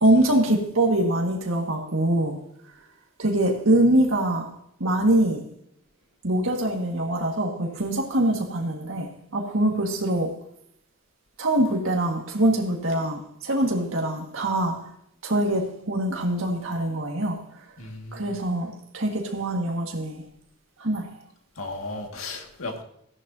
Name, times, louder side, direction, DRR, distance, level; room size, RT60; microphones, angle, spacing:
voice 1, 0.0-2.4 3.2-4.5 4.8-5.4 6.2-10.3 11.4-14.7 15.2-17.4 18.1-20.2 20.8-21.1, right 1 dB, 75° right, 1 dB, 1.8 m, -23 dB
voice 2, 17.8-18.3 21.6-22.8, left 2 dB, 85° left, 3 dB, 2.0 m, -35 dB
15.0 x 10.5 x 2.8 m, 0.74 s
head